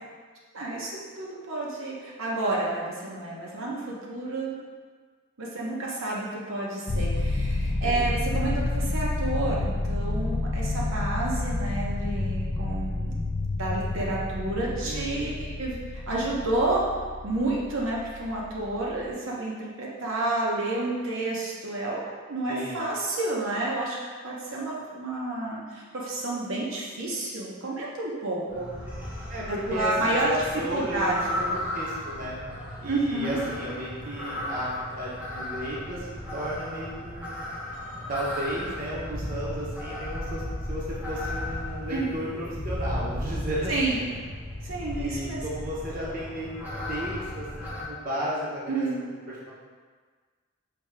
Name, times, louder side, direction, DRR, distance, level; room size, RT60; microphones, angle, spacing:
voice 1, 0.5-4.6 5.4-13.1 13.6-16.9 17.2-22.0 22.3-24.0 24.2-28.7 29.5-30.3 30.7-31.4 32.9-33.4 41.9-42.1 43.7-44.0 44.6-45.4 48.7-49.0, right 2 dB, 75° right, -4 dB, 0.8 m, -30 dB
sound 1, 6.9-19.1, left 2 dB, 30° left, 0.4 m, -29 dB
voice 2, 14.8-15.4 22.5-22.8 29.3-32.4 32.8-36.1 36.3-37.4 38.1-44.2 44.9-49.5, equal, 45° right, -6 dB, 0.8 m, -34 dB
sound 2, 28.5-47.8, left 1 dB, 10° right, 0.8 m, -35 dB
5.0 x 2.8 x 3.3 m, 1.5 s
head